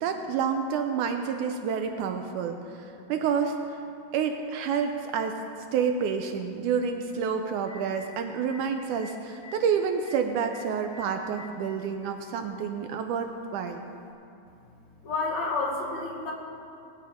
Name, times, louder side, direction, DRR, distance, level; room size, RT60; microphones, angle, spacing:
voice 1, 0.0-3.8 4.1-5.4 5.7-13.8, right 6 dB, 75° right, 5 dB, 2.0 m, -29 dB
Telephone, 4.9-5.0 7.1-7.2 7.5-8.1 8.5-8.6 9.0-9.1 9.4-9.5 10.0-10.1 10.5-10.6 10.9-11.5 12.5-12.6 14.0-14.1, left 2 dB, 85° left, 3.5 m, -46 dB
voice 2, 15.0-16.3, left 3 dB, 60° left, -1 dB, 2.6 m, -29 dB
19.5 x 9.0 x 5.0 m, 2.6 s
omnidirectional pair, 3.9 m